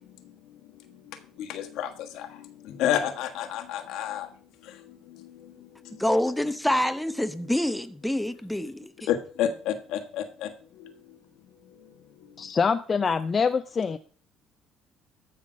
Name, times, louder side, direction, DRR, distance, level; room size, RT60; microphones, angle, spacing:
voice 1, 0.8-4.3 4.6-6.0 9.0-10.9 11.8-11.9, left 10 dB, 75° left, 1.5 m, -31 dB
voice 2, 6.0-8.9, left 1 dB, 5° left, 0.8 m, -26 dB
voice 3, 12.4-14.0, left 5 dB, 35° left, 0.6 m, -25 dB
14.0 x 5.9 x 5.1 m
cardioid pair, 100°, 0 cm